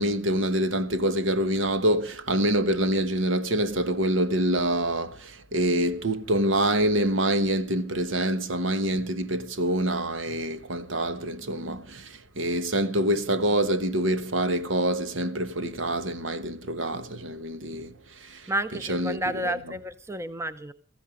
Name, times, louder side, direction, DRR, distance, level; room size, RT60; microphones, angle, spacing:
voice 1, 0.0-17.9 18.2-18.4 18.9-19.2 19.4-19.5, right 1 dB, 75° right, 1.3 m, -26 dB
voice 2, 18.5-20.7, right 1 dB, 15° right, 0.7 m, -31 dB
16.5 x 14.5 x 5.0 m
head